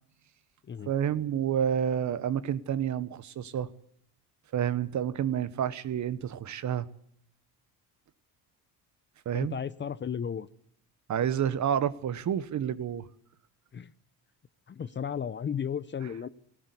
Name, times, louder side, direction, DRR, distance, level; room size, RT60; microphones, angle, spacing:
voice 1, 0.9-3.7 4.5-6.9 9.2-9.6 11.1-13.1, right 9 dB, 50° right, 14 dB, 1.2 m, -29 dB
voice 2, 9.3-10.5 13.7-13.9 14.7-16.3, left 7 dB, 30° left, 16 dB, 0.7 m, -34 dB
18.5 x 17.5 x 8.3 m, 0.67 s
cardioid pair, 115°, 38 cm